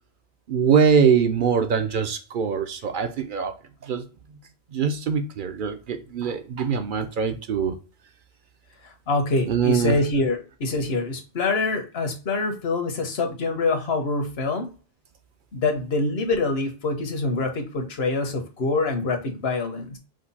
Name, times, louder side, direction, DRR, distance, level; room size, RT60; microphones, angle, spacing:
voice 1, 0.5-3.5 3.8-4.0 4.7-7.7 9.5-10.0, right 6 dB, 60° right, 0.7 m, -22 dB
voice 2, 8.8-14.7 15.5-20.0, left 3 dB, 80° left, 1.2 m, -25 dB
5.0 x 2.3 x 4.0 m
omnidirectional pair, 1.0 m